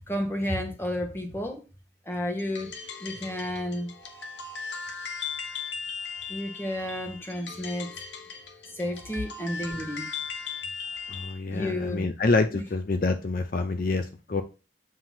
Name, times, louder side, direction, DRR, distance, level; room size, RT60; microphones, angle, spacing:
voice 1, 0.1-1.6 2.1-2.7 3.0-3.9 6.3-7.9 8.7-10.1 11.5-12.1 12.5-12.6, left 1 dB, 15° left, 1.2 m, -31 dB
sound 1, 2.4-11.4, left 6 dB, 80° left, 1.1 m, -38 dB
voice 2, 11.1-14.4, left 3 dB, 50° left, 0.5 m, -27 dB
7.4 x 2.9 x 5.8 m
head